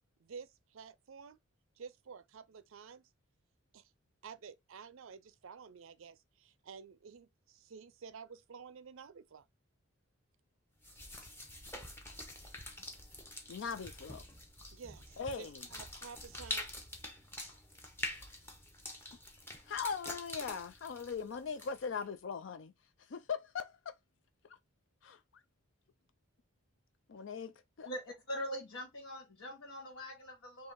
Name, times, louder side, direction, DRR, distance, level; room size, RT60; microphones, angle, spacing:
voice 1, 0.2-1.4 1.8-3.1 3.7-3.9 4.2-9.5 14.7-16.7, right 6 dB, 70° right, 0.5 m, -51 dB
sound 1, 10.8-22.0, left 1 dB, 10° left, 0.7 m, -46 dB
voice 2, 13.5-14.2 15.2-15.7 19.7-22.7 23.1-24.0 25.0-25.2 27.1-27.5 27.8-27.9, left 6 dB, 60° left, 0.4 m, -40 dB
voice 3, 27.8-30.7, equal, 75° left, 1.3 m, -43 dB
4.0 x 2.8 x 3.4 m
head